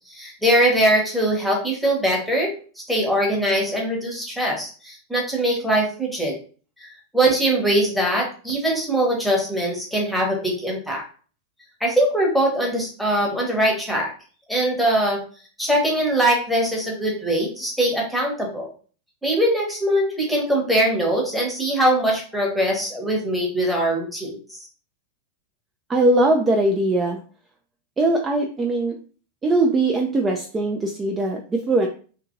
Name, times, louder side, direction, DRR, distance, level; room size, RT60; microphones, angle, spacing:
voice 1, 0.1-6.4 6.8-11.0 11.8-14.1 14.5-15.2 15.6-18.7 19.2-24.6, right 1 dB, ahead, -2 dB, 0.9 m, -22 dB
voice 2, 25.9-27.2 28.0-29.0 29.4-31.9, right 2 dB, 20° right, 2 dB, 0.3 m, -20 dB
2.8 x 2.5 x 2.6 m, 0.41 s
figure-of-eight pair, 90°, 0 cm